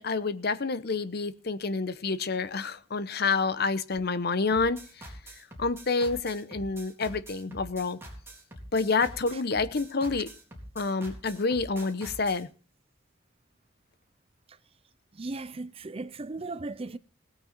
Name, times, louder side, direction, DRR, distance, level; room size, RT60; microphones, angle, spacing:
voice 1, 0.0-4.8 5.6-8.0 8.7-10.3 10.8-12.5, left 4 dB, 55° left, 0.8 m, -28 dB
Dance Beat, 4.5-12.4, right 1 dB, 15° right, 3.8 m, -45 dB
voice 2, 15.1-17.0, right 3 dB, 30° right, 0.5 m, -37 dB
17.5 x 8.9 x 4.4 m
head